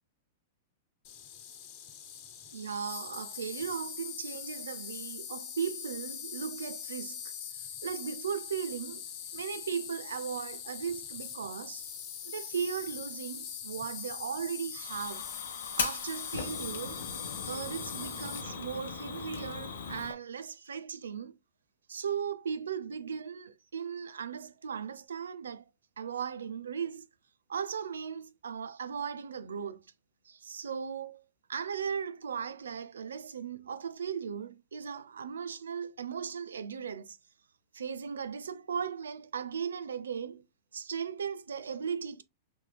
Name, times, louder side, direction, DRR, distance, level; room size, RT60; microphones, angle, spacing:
Insect, 1.0-18.4, left 8 dB, 50° left, 1.0 m, -42 dB
voice 1, 2.5-7.2 7.5-9.0 9.3-11.9 12.2-15.3 15.8-17.1 17.4-21.3 21.9-25.6 26.0-27.0 27.5-29.9 30.3-31.2 31.5-37.2 37.7-40.5 40.7-42.2, right 7 dB, 85° right, 0.5 m, -37 dB
Fire, 14.8-20.1, left 5 dB, 80° left, 0.8 m, -39 dB
4.4 x 3.2 x 2.2 m
hypercardioid pair, 115°, 0 cm